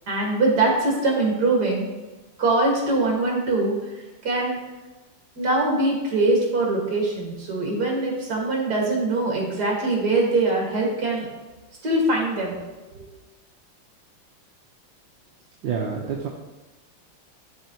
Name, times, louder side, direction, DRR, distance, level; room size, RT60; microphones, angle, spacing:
voice 1, 0.1-1.9 2.4-3.7 4.2-4.6 5.4-11.3 11.8-12.6 13.0-13.1, right 2 dB, 50° right, -1 dB, 2.1 m, -22 dB
voice 2, 15.6-16.3, right 6 dB, 70° right, -2 dB, 1.4 m, -27 dB
11.0 x 4.5 x 2.9 m, 1.2 s
omnidirectional pair, 2.3 m